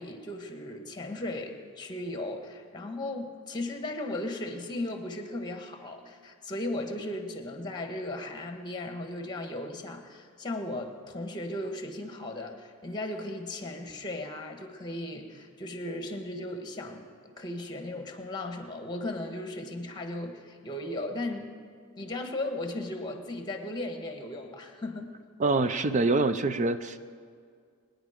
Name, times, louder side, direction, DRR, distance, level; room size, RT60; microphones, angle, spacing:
voice 1, 0.0-21.5 22.0-25.1, left 1 dB, 20° left, 5 dB, 1.4 m, -36 dB
voice 2, 25.4-27.0, right 3 dB, 35° right, 11 dB, 0.5 m, -25 dB
22.5 x 10.0 x 5.1 m, 2.1 s
head